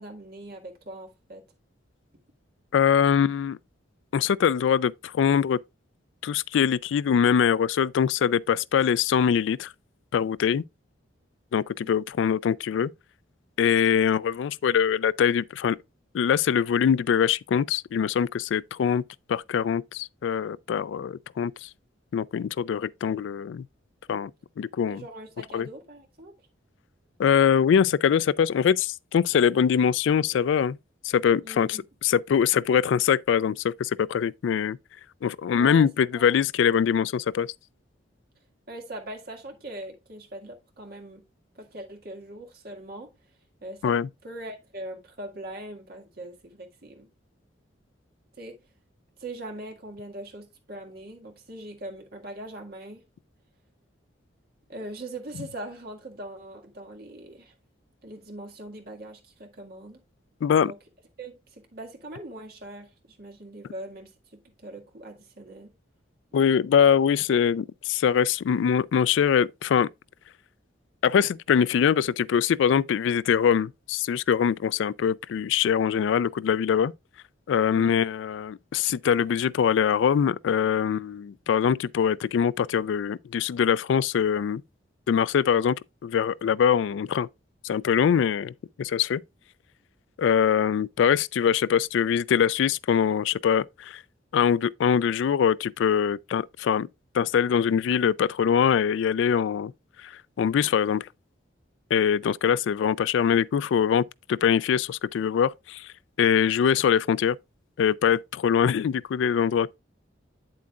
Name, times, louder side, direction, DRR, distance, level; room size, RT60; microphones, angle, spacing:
voice 1, 0.0-1.4 11.8-12.0 24.9-26.3 31.4-31.8 35.6-35.9 36.1-36.3 38.7-41.2 41.6-43.1 43.6-44.0 44.2-47.1 48.4-48.6 49.2-53.0 54.7-57.5 58.0-60.0 60.6-60.8 61.2-65.7 77.7-78.0, right 1 dB, 50° right, 1.9 m, -41 dB
voice 2, 2.7-3.6 4.1-5.6 6.2-9.7 10.1-10.6 11.5-12.9 13.6-15.8 16.1-19.0 19.3-21.7 22.1-23.6 24.1-24.3 24.6-25.0 25.5-25.7 27.2-30.8 31.0-34.8 35.2-37.5 43.8-44.1 60.4-60.7 66.3-69.9 71.0-76.9 77.5-84.6 85.1-87.3 87.6-88.5 88.8-89.2 90.2-94.0 94.3-96.9 97.1-99.7 100.0-101.1 101.9-105.9 106.2-107.4 107.8-109.8, left 7 dB, 70° left, 0.3 m, -23 dB
8.6 x 7.6 x 2.4 m
head